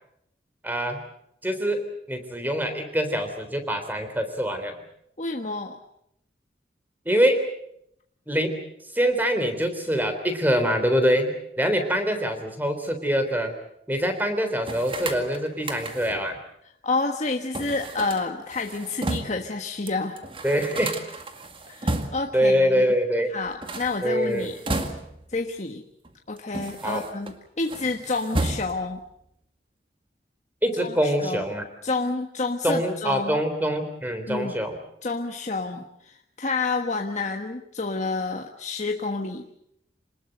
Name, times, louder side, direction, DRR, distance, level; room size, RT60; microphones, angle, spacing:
voice 1, 0.6-1.0 1.4-4.8 7.1-7.5 8.3-8.6 8.9-13.5 13.9-16.4 20.4-21.0 22.3-23.3 24.0-24.6 26.8-27.0 30.6-31.6 32.6-34.8, equal, 10° right, 7 dB, 3.6 m, -24 dB
voice 2, 5.2-5.8 16.8-20.2 21.7-22.8 23.3-24.5 25.3-25.8 26.3-29.0 30.8-31.4 31.8-33.4 34.3-34.5 35.0-39.5, left 3 dB, 40° left, 3 dB, 1.4 m, -29 dB
sound 1, 14.6-16.3 17.5-19.5 19.9-20.0 20.2-22.4 23.5-25.3 26.0-27.3 27.6-29.0, right 2 dB, 30° right, 2.1 m, -32 dB
27.0 x 20.0 x 7.9 m, 0.75 s
head